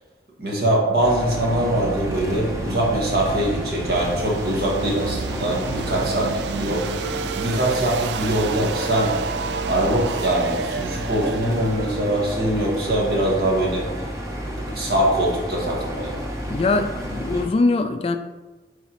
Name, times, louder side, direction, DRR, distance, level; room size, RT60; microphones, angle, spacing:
voice 1, 0.4-6.3 6.6-6.9 7.3-9.1 9.7-13.9 14.7-16.3, right 1 dB, 60° right, -3 dB, 1.7 m, -22 dB
sound 1, 1.0-17.5, equal, 20° right, 0.8 m, -31 dB
sound 2, 1.4-14.2, right 5 dB, 75° right, 0.3 m, -32 dB
voice 2, 16.5-18.2, left 3 dB, 35° left, 8 dB, 0.3 m, -22 dB
9.7 x 3.7 x 3.0 m, 1.2 s
head